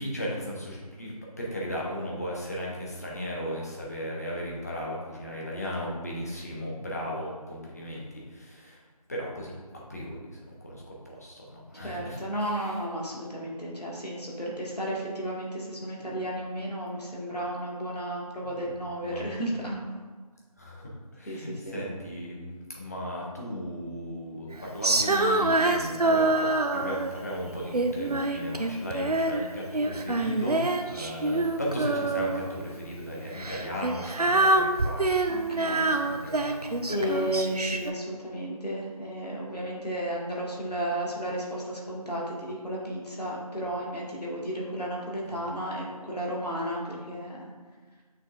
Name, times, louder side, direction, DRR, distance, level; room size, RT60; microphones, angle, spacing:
voice 1, 0.0-8.8 9.1-9.5 9.9-12.2 12.6-12.7 18.4-18.8 19.0-19.2 20.6-35.5 35.8-37.1 45.2-45.4, equal, 25° left, -4 dB, 1.0 m, -36 dB
voice 2, 11.8-19.8 21.3-21.8 35.3-35.9 36.9-47.5, equal, 85° left, -4 dB, 1.9 m, -33 dB
Female singing, 24.8-27.2 27.7-29.5 29.7-32.6 33.3-37.9, right 2 dB, 75° right, 0.6 m, -26 dB
6.4 x 6.4 x 2.5 m, 1.4 s
figure-of-eight pair, 165°, 20 cm